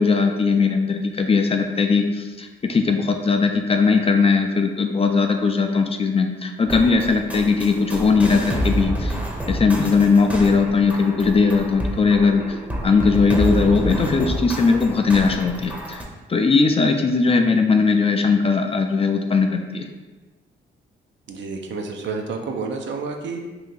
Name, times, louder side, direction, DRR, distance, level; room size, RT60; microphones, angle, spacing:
voice 1, 0.0-9.2 9.5-12.6 12.8-16.0 16.3-19.8, left 4 dB, 30° left, 5 dB, 0.4 m, -19 dB
sound 1, 6.7-16.0, equal, 5° right, 0.7 m, -28 dB
voice 2, 21.3-23.5, right 4 dB, 65° right, 3 dB, 0.5 m, -29 dB
2.8 x 2.5 x 3.9 m, 1.2 s
cardioid pair, 65°, 21 cm